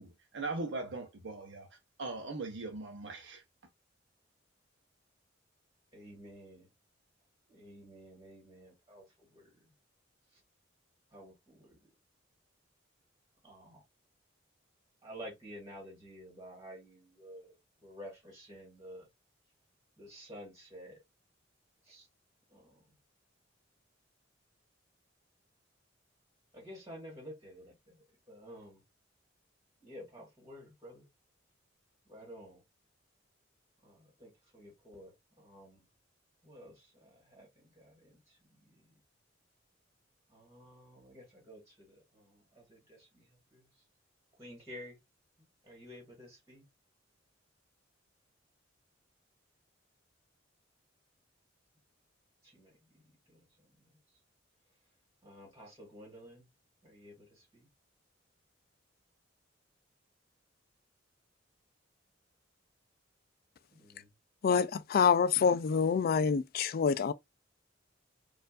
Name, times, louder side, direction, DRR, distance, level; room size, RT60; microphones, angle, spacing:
voice 1, 0.0-3.4, right 3 dB, 65° right, 0.7 m, -40 dB
voice 2, 5.9-6.7 7.5-9.7 10.3-10.4 11.1-11.8 13.4-13.8 15.0-19.1 20.0-21.0 21.8-22.1 22.5-23.0 26.5-28.8 29.8-31.1 32.0-32.6 33.8-35.9 36.4-38.8 40.3-43.8 44.4-45.0 45.4-46.7 52.4-53.0 53.3-53.9 55.2-56.5 56.8-57.7 63.7-64.1, equal, 15° right, 1.8 m, -52 dB
voice 3, 64.4-67.1, left 6 dB, 50° left, 0.3 m, -27 dB
4.4 x 2.5 x 2.4 m
head